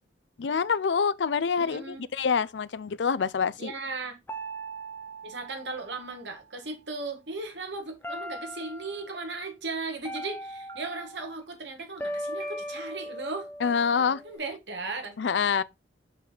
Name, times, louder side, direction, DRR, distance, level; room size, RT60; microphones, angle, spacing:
voice 1, 0.4-3.7 13.6-14.2 15.2-15.6, left 6 dB, 75° left, 0.5 m, -26 dB
voice 2, 1.6-2.1 3.6-4.2 5.2-13.5 14.0-15.2, right 3 dB, 70° right, 1.9 m, -37 dB
sound 1, 4.3-6.6 8.0-9.1 10.0-11.3 12.0-14.4, equal, 10° left, 1.1 m, -39 dB
sound 2, 8.6-8.7 9.1-9.5 10.2-10.3 10.7-11.2 11.8-11.9 12.4-13.0, right 3 dB, 50° right, 1.0 m, -48 dB
6.2 x 5.3 x 4.0 m
head